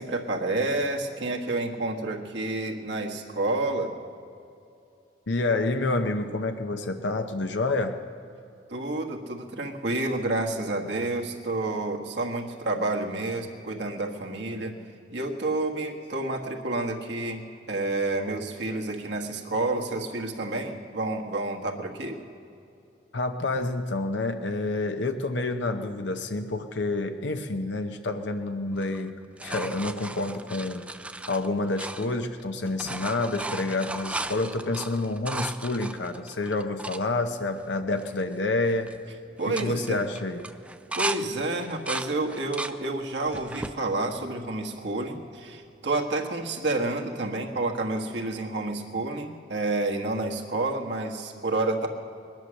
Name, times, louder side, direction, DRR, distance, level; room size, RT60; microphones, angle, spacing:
voice 1, 0.0-3.9 8.7-14.7 15.1-22.2 39.4-40.0 40.9-51.9, right 2 dB, 70° right, 1 dB, 1.5 m, -29 dB
voice 2, 5.3-8.0 23.1-29.2 29.4-30.8 31.3-38.9 39.5-40.4, left 2 dB, 80° left, 6 dB, 0.8 m, -28 dB
sound 1, 28.7-32.4 32.7-37.0 37.6-37.7 37.9-38.3 38.6-39.0 39.4-41.2 41.6-42.8 43.3-43.8 44.4-45.1 46.7-46.8, right 2 dB, 5° right, 0.3 m, -36 dB
21.0 x 10.5 x 6.4 m, 2.6 s
head